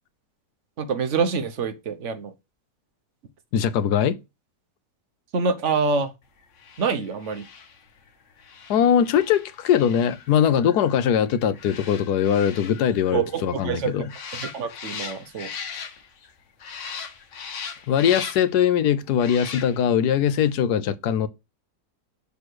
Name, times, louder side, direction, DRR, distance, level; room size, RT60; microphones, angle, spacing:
voice 1, 0.8-2.3 5.3-6.1 6.8-7.5 13.1-13.9 14.4-15.5, right 5 dB, 50° right, 1.3 m, -26 dB
voice 2, 3.5-4.2 8.7-14.1 17.9-21.3, left 9 dB, 75° left, 1.3 m, -21 dB
sound 1, 6.5-16.3 16.6-18.6 19.1-20.0 20.3-20.5, left 6 dB, 50° left, 1.2 m, -39 dB
6.8 x 3.3 x 6.2 m
omnidirectional pair, 1.8 m